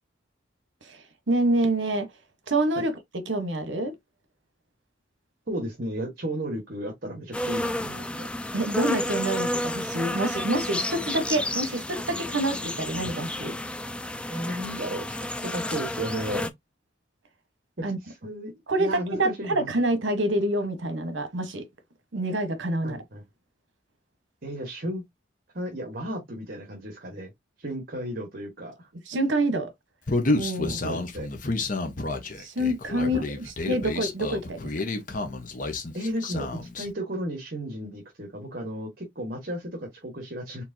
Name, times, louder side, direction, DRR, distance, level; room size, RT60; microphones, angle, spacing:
voice 1, 0.8-2.1 2.5-3.9 8.5-13.6 17.8-18.0 18.7-21.7 22.1-23.0 29.1-29.7 30.3-30.8 32.4-34.7, right 1 dB, 70° right, 1.1 m, -27 dB
voice 2, 5.5-8.3 14.3-16.5 17.8-18.5 18.8-19.7 22.8-23.2 24.4-25.0 25.5-27.3 27.6-28.9 30.8-31.3 33.0-33.2 35.9-40.6, equal, 50° right, 1.3 m, -34 dB
sound 1, 7.3-16.5, left 1 dB, 5° left, 0.3 m, -31 dB
Human voice, 30.1-36.9, left 2 dB, 40° left, 0.9 m, -30 dB
4.4 x 3.5 x 2.7 m
head